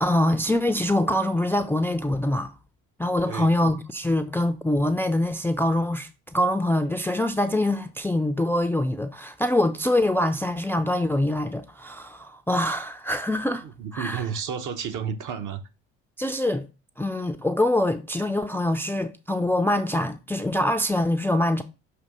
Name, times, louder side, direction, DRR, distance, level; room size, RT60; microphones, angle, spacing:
voice 1, 0.0-2.5 3.0-13.6 13.9-14.2 16.2-16.7 17.0-21.6, left 1 dB, 5° left, 0.4 m, -24 dB
voice 2, 3.2-3.5 13.6-15.6, right 7 dB, 55° right, 1.1 m, -31 dB
6.5 x 2.8 x 5.3 m
hypercardioid pair, 70°, 36 cm